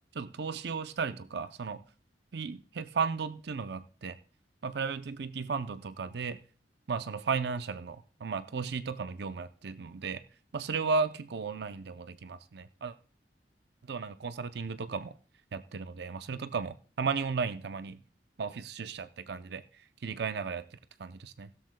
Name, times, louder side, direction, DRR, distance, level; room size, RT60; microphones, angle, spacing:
voice 1, 0.1-1.8 2.3-4.2 4.6-6.4 6.9-10.2 10.5-12.9 13.9-15.1 15.5-18.0 18.4-19.6 20.0-20.6 21.0-21.5, right 5 dB, 65° right, 12 dB, 0.6 m, -34 dB
16.0 x 13.0 x 2.2 m, 0.37 s
head